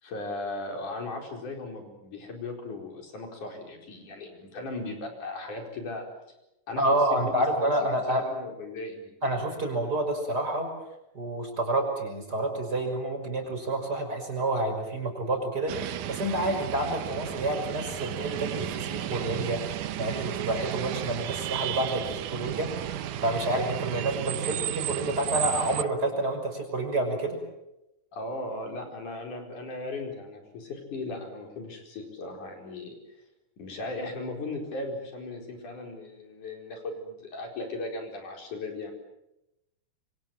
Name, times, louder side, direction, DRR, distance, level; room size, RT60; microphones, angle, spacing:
voice 1, 0.0-6.1 6.7-9.1 24.3-24.5 28.1-33.0 33.6-38.9, left 2 dB, 70° left, 3 dB, 6.1 m, -37 dB
voice 2, 6.8-8.2 9.2-10.7 11.1-27.4, right 1 dB, 30° right, 4 dB, 6.2 m, -29 dB
sound 1, 15.7-25.8, right 12 dB, 75° right, 2.5 m, -33 dB
27.0 x 24.5 x 7.7 m, 0.89 s
omnidirectional pair, 3.7 m